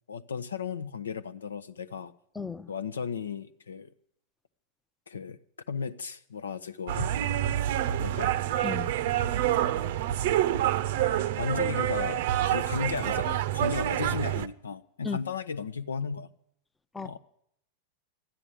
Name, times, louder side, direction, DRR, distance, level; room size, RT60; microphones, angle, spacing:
voice 1, 0.1-2.1 2.7-3.9 5.1-5.4 5.7-7.1 8.0-8.4 11.4-16.3 17.0-17.2, left 5 dB, 75° left, 0.7 m, -35 dB
voice 2, 2.4-2.7 8.6-8.9 15.0-15.2 16.9-17.2, left 5 dB, 10° left, 0.7 m, -34 dB
sound 1, 6.9-14.5, right 12 dB, 55° right, 0.6 m, -27 dB
13.0 x 9.9 x 8.3 m
figure-of-eight pair, 90°, 0 cm